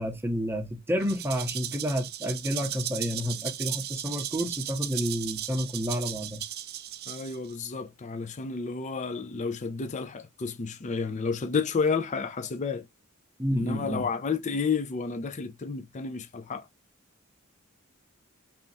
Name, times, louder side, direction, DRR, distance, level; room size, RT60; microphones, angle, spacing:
voice 1, 0.0-6.4 13.4-14.1, equal, 10° right, 0.8 m, -30 dB
Rattle (instrument), 1.0-7.5, right 12 dB, 50° right, 0.4 m, -36 dB
voice 2, 7.1-12.8 13.5-16.7, left 5 dB, 35° left, 0.5 m, -31 dB
3.4 x 2.9 x 4.1 m
head